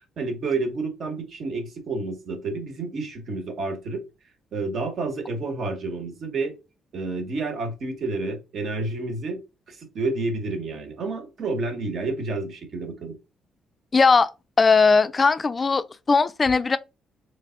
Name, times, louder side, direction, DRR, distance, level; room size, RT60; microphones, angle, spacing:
voice 1, 0.2-4.0 4.5-6.5 6.9-9.4 9.7-13.2, right 3 dB, 55° right, 1.2 m, -29 dB
voice 2, 13.9-14.3 14.6-16.8, left 4 dB, 25° left, 0.3 m, -19 dB
3.4 x 3.3 x 3.8 m
cardioid pair, 135°, 0 cm